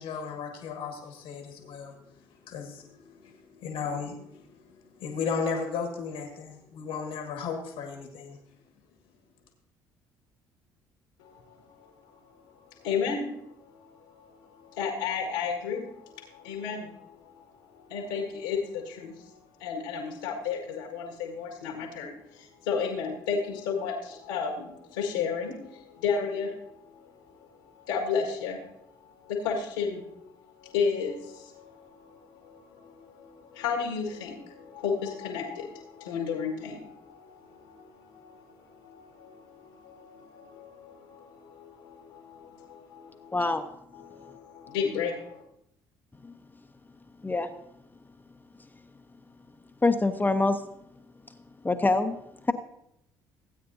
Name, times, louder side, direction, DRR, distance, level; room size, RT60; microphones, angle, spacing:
voice 1, 0.0-2.1 2.4-8.4, left 5 dB, 70° left, 3 dB, 1.5 m, -35 dB
voice 2, 11.2-11.9 12.6-28.8 29.0-30.3 30.6-43.4 43.9-45.4, left 6 dB, 90° left, 0 dB, 1.8 m, -34 dB
voice 3, 43.3-43.6 46.2-46.3 47.2-47.5 49.8-50.6 51.6-52.2 52.4-52.5, left 3 dB, 15° left, 7 dB, 0.9 m, -24 dB
17.0 x 8.6 x 2.7 m, 0.77 s
hypercardioid pair, 55°, 10 cm